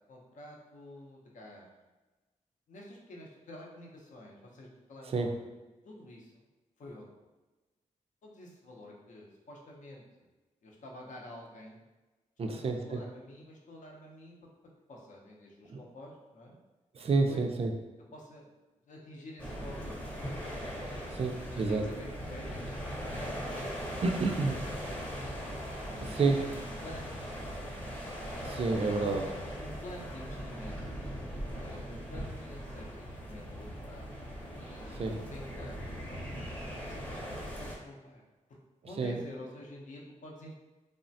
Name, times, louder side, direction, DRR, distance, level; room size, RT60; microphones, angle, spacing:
voice 1, 0.1-1.7 2.7-5.4 5.8-6.4 6.8-7.1 8.2-10.3 10.6-11.8 12.5-14.3 14.9-16.6 17.3-17.4 18.1-18.5 18.9-20.5 21.5-23.6 23.9-24.2 24.9-28.0 29.0-30.8 31.6-34.1 34.8-36.3 36.8-38.2 38.8-40.6, left 1 dB, 75° left, -1 dB, 0.6 m, -49 dB
voice 2, 12.4-13.0 15.7-15.8 16.9-17.7 21.1-21.8 24.0-24.7 26.0-26.4 28.4-29.2 35.0-35.2 39.0-39.2, right 3 dB, 50° right, 4 dB, 0.4 m, -29 dB
sound 1, 19.4-37.8, equal, 10° left, 0.6 m, -40 dB
3.2 x 2.1 x 2.6 m, 1.2 s
wide cardioid pair, 95°, 13 cm